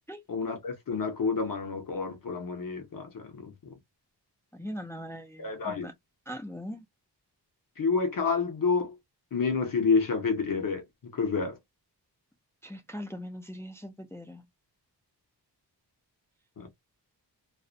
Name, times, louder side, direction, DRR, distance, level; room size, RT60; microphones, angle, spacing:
voice 1, 0.3-3.7 5.4-5.9 7.8-9.0 9.3-11.6 16.6-16.7, left 5 dB, 55° left, 0.9 m, -29 dB
voice 2, 4.5-5.9 6.3-6.8 12.6-14.4, equal, 5° left, 0.3 m, -40 dB
2.5 x 2.1 x 2.5 m
wide cardioid pair, 155°, 41 cm